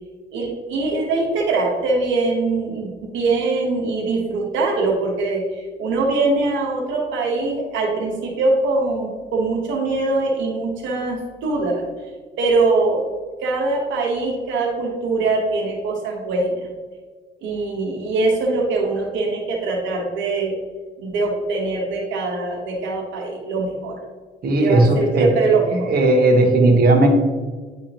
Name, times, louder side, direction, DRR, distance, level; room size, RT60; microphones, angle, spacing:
voice 1, 0.3-11.8 12.4-13.0 13.4-16.7 17.4-20.6 21.0-24.0 24.6-25.9, right 3 dB, 90° right, -1 dB, 1.1 m, -22 dB
voice 2, 24.4-25.3 25.9-27.1, right 2 dB, 55° right, 2 dB, 1.3 m, -15 dB
10.0 x 3.6 x 2.9 m, 1.5 s
cardioid pair, 85°, 19 cm